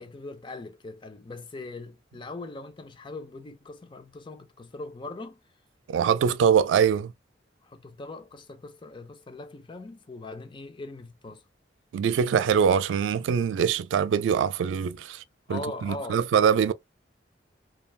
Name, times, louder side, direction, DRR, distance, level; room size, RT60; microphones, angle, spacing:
voice 1, 0.0-5.4 7.6-11.4 15.5-16.2, left 2 dB, 25° left, 0.5 m, -40 dB
voice 2, 5.9-7.1 11.9-15.2 15.5-16.7, right 7 dB, 80° right, 0.3 m, -23 dB
3.2 x 2.3 x 2.3 m
head